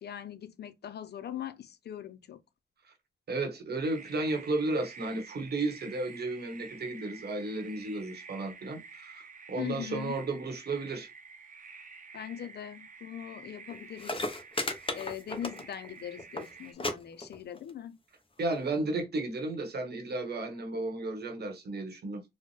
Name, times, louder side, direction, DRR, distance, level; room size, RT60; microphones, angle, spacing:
voice 1, 0.0-2.4 9.6-10.2 12.1-14.2 14.9-18.0, left 10 dB, 80° left, 0.5 m, -41 dB
voice 2, 3.3-11.1 18.4-22.2, right 2 dB, 75° right, 1.0 m, -33 dB
sound 1, 3.8-16.7, right 5 dB, 55° right, 0.7 m, -50 dB
sound 2, 13.7-13.8 14.0-15.9 16.2-16.5 16.8-16.9 17.2-17.7 18.5-18.6, left 2 dB, 30° left, 0.8 m, -34 dB
4.2 x 2.0 x 3.1 m
cardioid pair, 65°, 17 cm